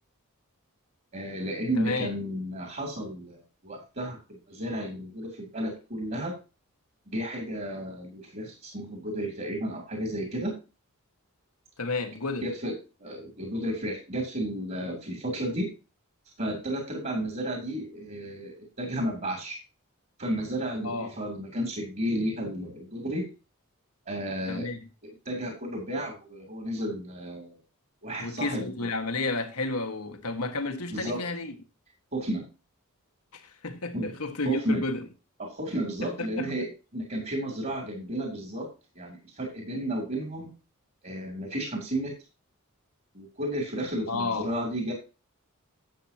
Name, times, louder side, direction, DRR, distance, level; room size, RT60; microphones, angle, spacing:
voice 1, 1.1-6.4 7.1-10.5 12.4-12.7 13.0-15.7 16.4-19.6 20.2-23.3 24.1-24.7 25.0-27.6 28.0-28.7 30.9-31.2 32.1-32.5 33.9-34.1 34.4-34.8 35.4-36.7 36.9-38.7 38.9-40.5 41.0-42.1 43.1-44.9, right 1 dB, 40° right, 2.9 m, -32 dB
voice 2, 1.8-2.1 11.8-12.5 20.8-21.1 24.5-24.8 28.2-31.5 33.3-35.0 36.0-36.7 44.1-44.5, left 3 dB, 80° left, 1.6 m, -32 dB
12.0 x 7.9 x 2.8 m
head